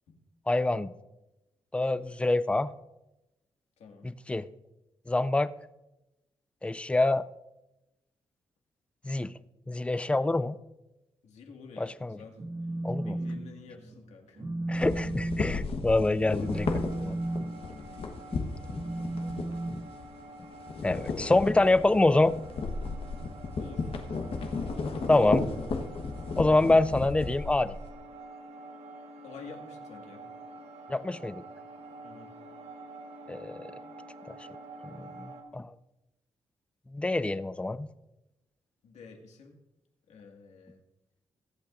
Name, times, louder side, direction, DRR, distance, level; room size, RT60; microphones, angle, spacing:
voice 1, 0.5-0.9 1.7-2.7 4.0-4.5 5.1-5.5 6.6-7.2 9.0-9.3 9.7-10.6 11.8-12.2 12.8-13.2 14.7-17.2 18.3-18.4 20.8-22.3 25.1-25.5 26.4-27.7 30.9-31.4 33.3-33.7 34.3-34.4 34.8-35.7 36.9-37.9, left 2 dB, 10° left, 16 dB, 0.3 m, -26 dB
voice 2, 3.8-4.1 11.2-11.9 12.2-12.4 13.0-14.5 17.7-18.0 21.1-21.4 23.6-23.9 29.2-30.2 32.0-32.3 38.8-39.6 40.1-40.8, left 5 dB, 90° left, 2 dB, 2.0 m, -48 dB
Telephone, 12.2-13.4 13.7-14.0 14.4-20.5, right 1 dB, 40° right, 1.7 m, -35 dB
sound 1, 14.7-20.2 20.5-27.9, left 4 dB, 55° left, 1.2 m, -34 dB
sound 2, 16.4-35.4, right 2 dB, 65° right, 1.2 m, -48 dB
22.5 x 8.5 x 2.6 m, 0.96 s
wide cardioid pair, 140°, 11 cm